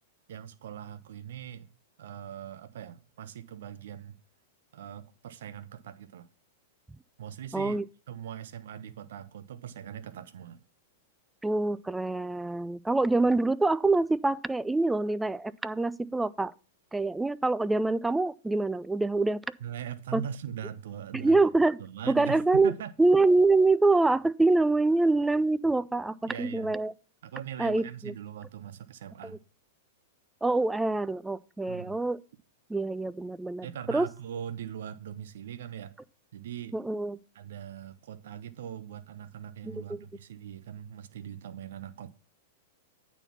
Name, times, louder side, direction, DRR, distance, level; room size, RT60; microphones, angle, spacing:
voice 1, 0.3-1.7 2.0-4.2 4.7-6.3 7.2-7.8 8.1-10.6 19.6-21.4 21.8-22.9 26.3-26.7 27.2-29.4 31.7-32.0 33.6-35.9 36.3-36.7 37.3-42.1, right 9 dB, 65° right, 0.5 m, -41 dB
voice 2, 7.5-7.8 11.4-16.5 16.9-19.4 20.1-20.2 21.1-21.8 22.1-22.7 23.0-26.9 27.6-28.1 29.2-29.4 30.4-32.2 32.7-34.1 36.7-37.2 39.6-40.0, right 3 dB, 10° right, 0.3 m, -25 dB
9.1 x 4.0 x 5.8 m
hypercardioid pair, 100°, 0 cm